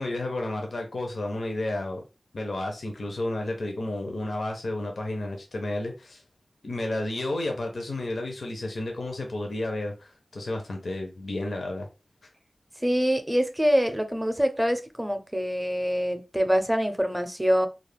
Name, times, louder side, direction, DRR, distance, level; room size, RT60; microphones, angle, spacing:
voice 1, 0.0-2.0 2.3-6.2 6.6-11.9, left 2 dB, 75° left, 0.5 m, -31 dB
voice 2, 12.8-17.7, equal, 10° right, 0.5 m, -25 dB
2.3 x 2.0 x 3.2 m
wide cardioid pair, 65°, 0 cm